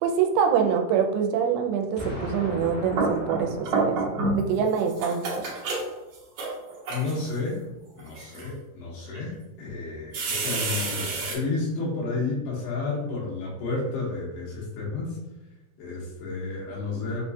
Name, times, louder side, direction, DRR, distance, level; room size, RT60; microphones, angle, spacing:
voice 1, 0.0-4.0 4.3-5.5, right 7 dB, 85° right, 4 dB, 2.6 m, -25 dB
Explosion, 2.0-4.9, left 1 dB, 55° left, 1.6 m, -37 dB
sound 1, 2.6-4.5 4.8-7.3 8.0-8.5 9.1-9.2 10.1-11.4, right 3 dB, 65° right, 1.8 m, -29 dB
voice 2, 6.9-7.6 8.0-15.2 15.8-17.2, left 3 dB, 90° left, -4 dB, 3.1 m, -31 dB
6.5 x 2.4 x 2.6 m, 0.97 s
omnidirectional pair, 4.5 m